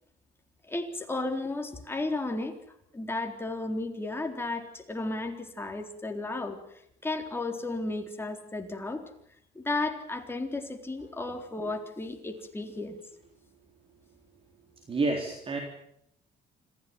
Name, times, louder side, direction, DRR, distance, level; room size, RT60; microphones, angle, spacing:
voice 1, 0.7-2.5 2.9-6.6 7.0-9.0 9.6-13.0, left 2 dB, 15° left, 4 dB, 3.9 m, -33 dB
voice 2, 14.9-15.6, right 3 dB, 35° right, 3 dB, 3.7 m, -29 dB
26.5 x 15.5 x 9.5 m, 0.74 s
cardioid pair, 110°, 17 cm